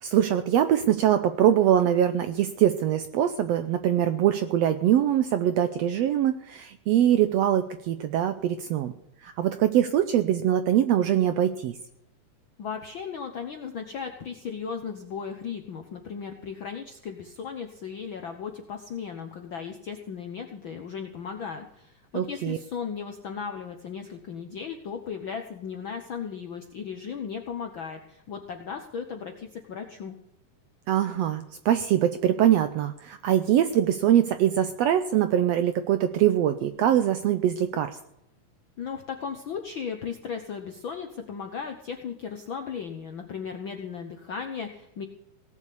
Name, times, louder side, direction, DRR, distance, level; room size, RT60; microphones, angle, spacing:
voice 1, 0.0-8.9 9.2-11.8 22.1-22.6 30.9-38.0, right 10 dB, 80° right, 10 dB, 1.5 m, -23 dB
voice 2, 12.6-30.1 38.8-45.1, left 6 dB, 70° left, 4 dB, 1.2 m, -36 dB
17.5 x 7.3 x 8.4 m, 0.80 s
omnidirectional pair, 3.6 m